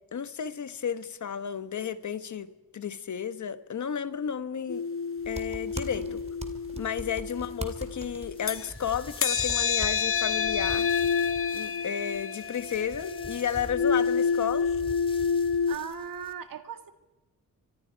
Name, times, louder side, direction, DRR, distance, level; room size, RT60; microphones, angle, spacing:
voice 1, 0.1-4.8 5.3-6.2 6.8-10.9 11.5-14.7, left 8 dB, 50° left, 12 dB, 1.2 m, -32 dB
sound 1, 4.7-8.7 9.1-15.8, left 6 dB, 35° left, 0.8 m, -29 dB
sound 2, 5.2-11.2, right 2 dB, 15° right, 2.5 m, -42 dB
sound 3, 8.0-16.3, left 2 dB, 15° left, 1.8 m, -47 dB
voice 2, 15.6-16.9, right 8 dB, 65° right, 8 dB, 2.0 m, -38 dB
29.5 x 25.5 x 4.6 m, 1.1 s
cardioid pair, 105°, 36 cm